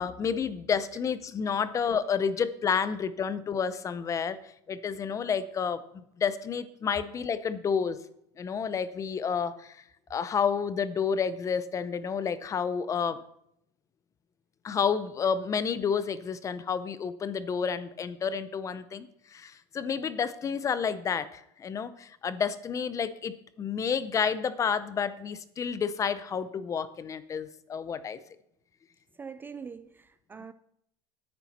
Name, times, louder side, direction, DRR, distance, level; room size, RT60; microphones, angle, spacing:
voice 1, 0.0-4.4 4.7-8.0 8.4-9.8 10.1-13.2 14.6-28.2, left 6 dB, 25° left, 0.6 m, -30 dB
voice 2, 29.2-30.5, right 6 dB, 15° right, 0.3 m, -43 dB
9.7 x 8.8 x 4.3 m
supercardioid pair, 125°, 12 cm